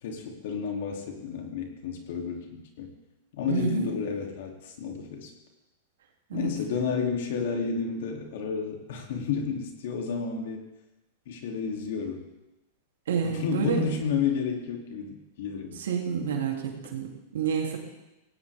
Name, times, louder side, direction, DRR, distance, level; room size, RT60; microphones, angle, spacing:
voice 1, 0.0-2.9 3.4-5.3 6.3-10.6 11.3-12.3 13.2-15.8, left 5 dB, 70° left, 2 dB, 2.9 m, -31 dB
voice 2, 3.5-3.9 6.3-6.5 13.1-13.8 15.8-16.6 16.9-17.8, right 6 dB, 85° right, 1 dB, 2.9 m, -28 dB
17.5 x 17.0 x 3.6 m, 0.98 s
hypercardioid pair, 125°, 0 cm